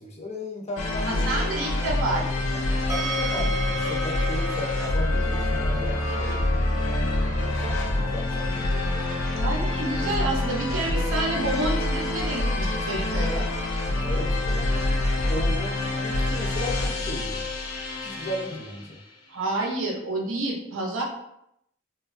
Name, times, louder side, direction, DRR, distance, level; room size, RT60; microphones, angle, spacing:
voice 1, 0.0-1.2 2.9-8.7 14.0-17.4 18.0-19.0, left 1 dB, 35° left, 0 dB, 0.5 m, -36 dB
sound 1, 0.8-18.9, left 2 dB, 85° left, 0.5 m, -26 dB
voice 2, 1.1-2.7 9.4-13.5 19.3-21.0, right 2 dB, 85° right, -1 dB, 0.6 m, -29 dB
sound 2, 2.9-15.9, left 1 dB, 20° right, 0.6 m, -37 dB
2.9 x 2.3 x 2.4 m, 0.78 s
head